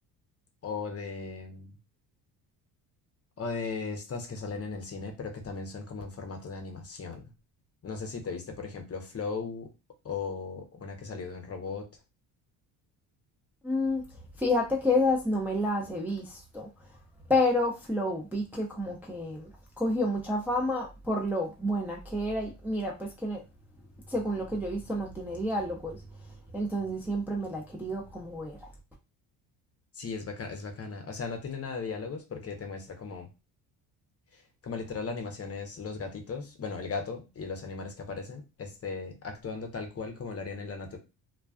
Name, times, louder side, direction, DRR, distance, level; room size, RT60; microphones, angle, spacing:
voice 1, 0.6-1.7 3.4-7.3 7.8-9.7 10.0-11.9 29.9-33.3 34.3-41.0, left 4 dB, 30° left, 5 dB, 0.7 m, -37 dB
voice 2, 13.6-14.0 14.4-16.7 17.3-23.4 24.1-26.0 26.5-28.7, left 1 dB, 5° right, -2 dB, 0.5 m, -29 dB
2.3 x 2.2 x 2.3 m, 0.27 s
supercardioid pair, 70°, 46 cm